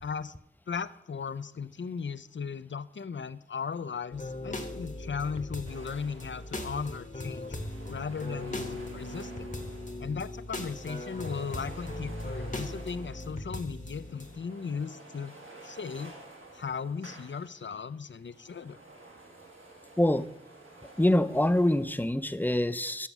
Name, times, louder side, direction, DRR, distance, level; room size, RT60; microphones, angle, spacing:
voice 1, 0.0-0.3 0.7-7.6 7.9-9.5 10.0-15.3 15.6-16.1 16.5-18.8, left 6 dB, 65° left, 15 dB, 0.4 m, -37 dB
sound 1, 4.1-14.4, left 1 dB, 40° left, 1.0 m, -39 dB
sound 2, 5.6-6.8 7.1-10.1 10.4-13.5 13.9-17.8 18.1-22.3, right 2 dB, 85° right, 1.6 m, -51 dB
voice 2, 20.0-20.3 21.0-23.1, left 1 dB, 10° left, 13 dB, 0.4 m, -25 dB
7.1 x 6.0 x 5.9 m, 0.86 s
wide cardioid pair, 40°, 20 cm